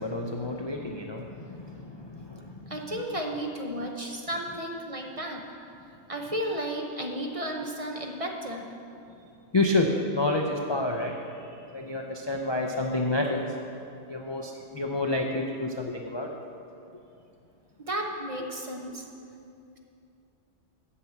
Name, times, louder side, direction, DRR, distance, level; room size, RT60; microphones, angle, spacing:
voice 1, 0.0-2.8 9.5-13.4 14.1-16.4, left 2 dB, 35° left, 1 dB, 0.4 m, -29 dB
voice 2, 2.7-5.4 6.1-8.7 17.9-19.0, right 1 dB, 35° right, 1 dB, 0.8 m, -33 dB
8.5 x 6.0 x 8.0 m, 2.6 s
omnidirectional pair, 1.2 m